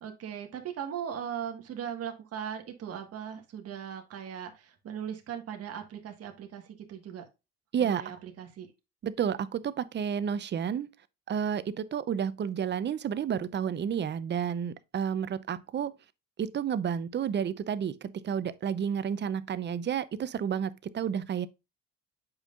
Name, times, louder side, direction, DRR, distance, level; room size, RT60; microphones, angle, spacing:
voice 1, 0.0-7.2 7.8-8.7, right 8 dB, 55° right, 1.6 m, -39 dB
voice 2, 9.0-10.9 11.3-15.9 16.4-21.5, right 8 dB, 35° right, 0.7 m, -31 dB
8.0 x 5.5 x 2.4 m
cardioid pair, 95°, 30 cm